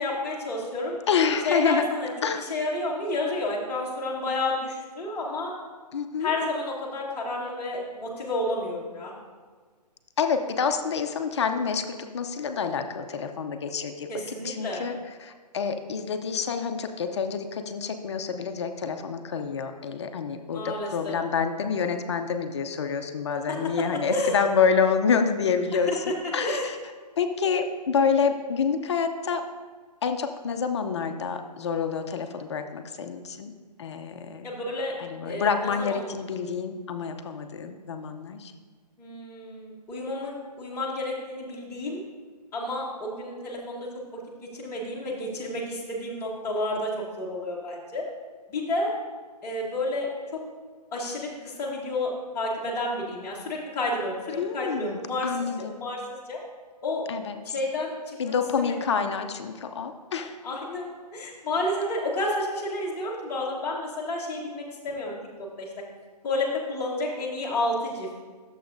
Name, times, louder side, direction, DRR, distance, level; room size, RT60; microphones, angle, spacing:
voice 1, 0.0-1.0 1.4-2.1 2.4-5.5 6.2-9.1 14.1-14.8 20.5-21.2 23.5-23.6 24.1-24.3 25.9-26.0 26.4-26.7 34.4-34.9 35.2-36.0 39.0-42.0 42.5-48.0 48.5-48.9 49.4-50.4 50.9-56.4 56.8-57.0 57.4-59.0 60.4-65.1 65.6-65.7 66.2-68.1, left 2 dB, 10° left, -7 dB, 1.2 m, -30 dB
voice 2, 1.1-1.8 2.2-2.5 5.9-6.3 10.2-26.0 26.3-26.8 27.2-29.4 30.0-33.5 33.8-34.5 35.0-38.5 54.4-55.8 57.1-57.4 58.2-60.4, left 6 dB, 40° left, 6 dB, 0.5 m, -27 dB
11.5 x 7.0 x 2.5 m, 1.5 s
hypercardioid pair, 150°, 21 cm